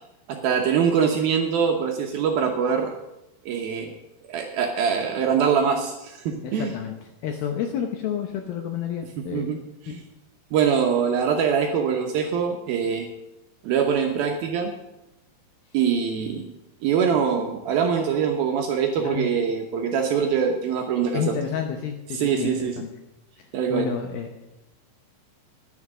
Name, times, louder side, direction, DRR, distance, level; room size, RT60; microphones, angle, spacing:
voice 1, 0.3-3.0 3.5-3.9 4.3-6.7 9.2-9.6 9.8-10.0 10.5-13.1 13.6-14.7 15.7-16.5 16.8-21.3 22.1-22.8 23.5-23.9, right 7 dB, 75° right, 2 dB, 2.3 m, -23 dB
voice 2, 6.4-7.0 7.2-9.5 9.9-10.0 19.0-19.3 21.1-22.9 23.7-24.3, left 8 dB, 75° left, 4 dB, 2.3 m, -30 dB
10.5 x 9.8 x 6.5 m, 0.90 s
omnidirectional pair, 5.2 m